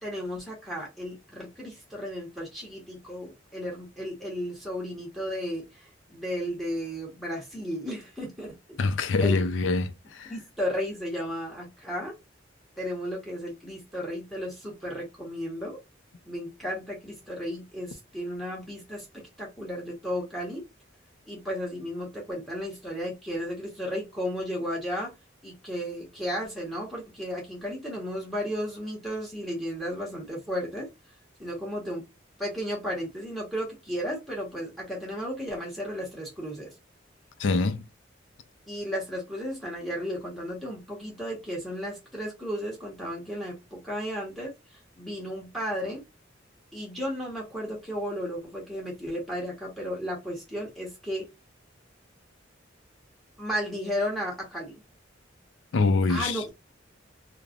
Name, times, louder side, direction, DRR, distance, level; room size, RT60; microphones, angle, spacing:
voice 1, 0.0-8.8 9.2-9.4 10.3-12.1 12.8-15.8 16.2-20.6 21.3-25.2 25.4-30.9 31.4-32.1 32.4-36.7 38.7-46.0 46.7-51.3 53.4-54.8 56.1-56.5, equal, ahead, 1.0 m, -34 dB
voice 2, 8.8-10.3 37.4-37.8 55.7-56.4, left 3 dB, 75° left, 0.5 m, -25 dB
3.1 x 2.1 x 2.4 m
head